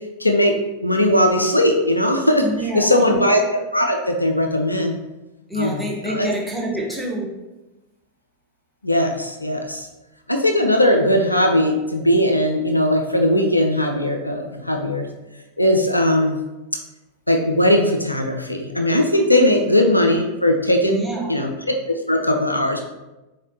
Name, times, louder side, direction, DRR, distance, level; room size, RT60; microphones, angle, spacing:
voice 1, 0.2-0.6 0.8-2.5 2.7-3.4 3.7-5.0 5.6-6.3 8.8-9.9 10.3-15.1 15.6-16.4 17.3-21.7 22.1-22.8, left 1 dB, 85° left, 3 dB, 0.4 m, -19 dB
voice 2, 2.4-3.2 5.5-7.3 19.5-19.6 20.8-21.4, equal, 5° left, -1 dB, 0.9 m, -27 dB
3.9 x 3.2 x 2.7 m, 1.0 s
figure-of-eight pair, 90°, 0 cm